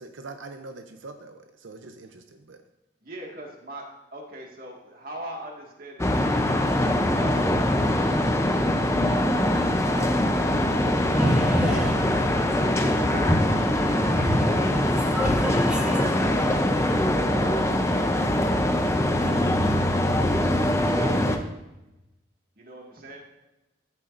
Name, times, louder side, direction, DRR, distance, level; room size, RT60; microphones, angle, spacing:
voice 1, 0.0-2.6, right 3 dB, 80° right, 0.7 m, -43 dB
voice 2, 3.0-3.8 4.1-6.6 7.1-10.6 11.2-13.3 13.7-15.1 15.8-15.9 16.7-19.8 20.6-21.4 22.6-23.2, right 1 dB, 50° right, 1.9 m, -42 dB
sound 1, 6.0-21.4, left 1 dB, 15° left, 0.6 m, -23 dB
voice 3, 11.1-16.6, equal, 5° right, 1.3 m, -28 dB
13.5 x 7.1 x 2.6 m
head